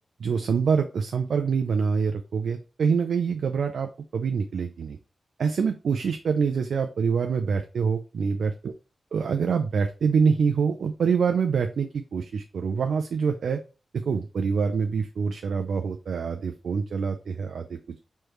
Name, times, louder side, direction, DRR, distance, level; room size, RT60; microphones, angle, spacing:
voice 1, 0.2-5.0 5.4-8.7 9.1-13.6 14.1-17.8, right 6 dB, 80° right, 6 dB, 0.4 m, -25 dB
4.7 x 3.2 x 3.1 m, 0.32 s
cardioid pair, 60°, 0 cm